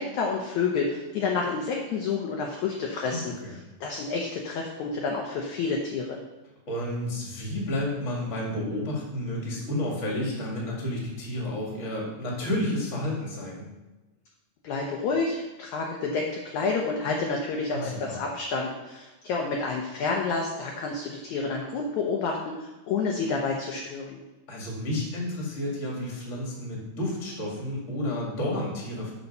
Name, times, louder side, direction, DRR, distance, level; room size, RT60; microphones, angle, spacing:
voice 1, 0.0-3.2 3.8-6.2 14.6-24.2, left 4 dB, 75° left, 0 dB, 1.8 m, -29 dB
voice 2, 3.1-3.5 6.7-13.7 17.7-18.2 24.5-29.1, left 1 dB, 25° left, -3 dB, 1.7 m, -31 dB
6.8 x 5.8 x 5.4 m, 1.1 s
omnidirectional pair, 4.2 m